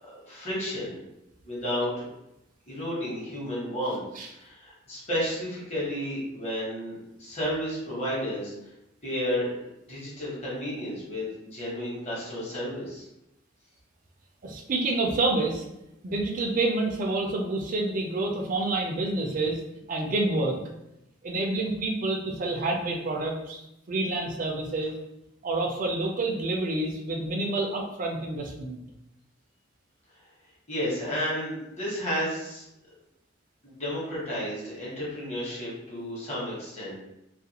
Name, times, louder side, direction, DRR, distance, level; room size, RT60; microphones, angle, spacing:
voice 1, 0.3-1.0 1.4-2.1 2.7-4.0 4.3-8.5 9.0-11.3 11.5-13.0 30.7-32.7 33.6-37.0, equal, 35° left, -7 dB, 1.0 m, -32 dB
voice 2, 14.4-15.6 16.0-19.6 19.9-20.6 21.2-23.6 23.9-24.9 25.4-28.8, right 2 dB, 40° right, 1 dB, 0.4 m, -28 dB
2.4 x 2.2 x 2.8 m, 0.88 s
head